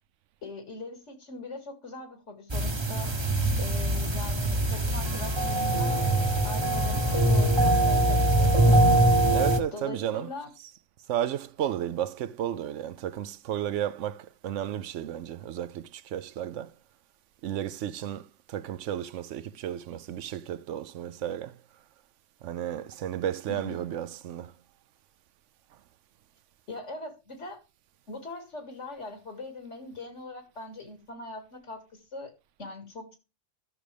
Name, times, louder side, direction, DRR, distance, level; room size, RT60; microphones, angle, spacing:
voice 1, 0.4-3.2 3.6-6.1 6.4-8.9 9.7-10.5 23.5-23.9 26.7-27.6 28.1-32.3 32.6-33.2, left 2 dB, 75° left, 2.5 m, -41 dB
sound 1, 2.5-9.6, right 1 dB, 25° right, 0.9 m, -23 dB
voice 2, 9.3-10.3 10.6-10.7 11.1-16.7 17.4-21.6 22.4-24.5, right 10 dB, 80° right, 0.9 m, -33 dB
13.0 x 6.3 x 3.4 m
omnidirectional pair, 1.2 m